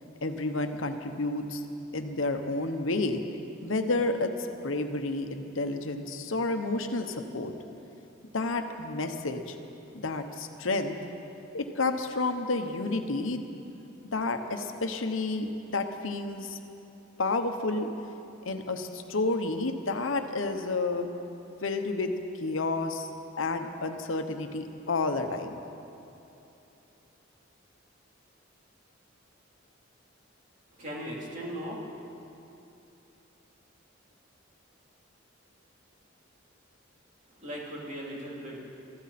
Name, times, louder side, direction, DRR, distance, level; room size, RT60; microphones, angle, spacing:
voice 1, 0.2-1.6 1.9-3.2 3.6-4.3 4.6-7.5 8.3-9.6 10.0-11.0 11.5-13.5 14.1-16.6 17.2-17.9 18.4-21.1 21.6-23.1 23.4-25.6, left 3 dB, 75° left, 6 dB, 1.0 m, -30 dB
voice 2, 30.7-32.2 37.3-38.6, equal, 40° right, -4 dB, 3.1 m, -38 dB
23.5 x 14.0 x 4.2 m, 2.9 s
head